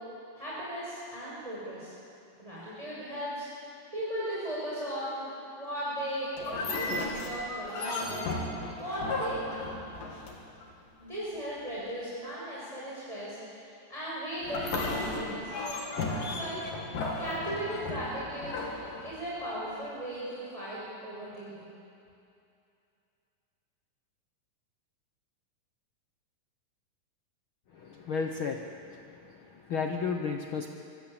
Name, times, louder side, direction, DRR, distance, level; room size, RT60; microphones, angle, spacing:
voice 1, 0.4-1.9 2.4-3.5 3.9-5.2 5.5-8.3 8.8-9.8 11.0-13.4 13.9-15.5 16.0-16.7 17.2-18.7 19.0-21.7, right 1 dB, 10° right, -8 dB, 6.3 m, -37 dB
sound 1, 6.4-10.7 14.4-19.5, left 2 dB, 70° left, 4.6 m, -35 dB
voice 2, 27.7-30.7, left 5 dB, 85° left, 4 dB, 1.1 m, -34 dB
25.5 x 23.0 x 8.9 m, 2.6 s
omnidirectional pair, 4.0 m